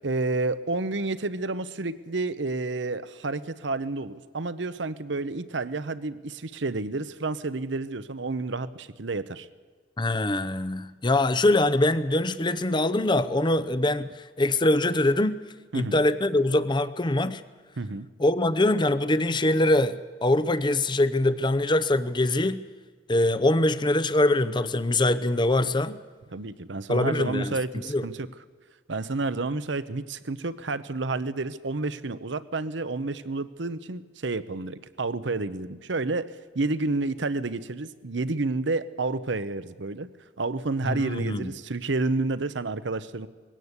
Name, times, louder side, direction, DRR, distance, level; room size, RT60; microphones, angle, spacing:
voice 1, 0.0-9.5 15.7-16.0 17.8-18.1 26.3-28.3 28.9-40.1 40.4-43.3, right 3 dB, 75° right, 14 dB, 0.9 m, -30 dB
voice 2, 10.0-15.4 15.7-17.4 18.2-22.6 23.1-26.0 26.9-27.6 27.9-28.1 40.8-41.5, left 1 dB, 25° left, 13 dB, 0.7 m, -23 dB
20.5 x 17.0 x 8.2 m, 1.5 s
head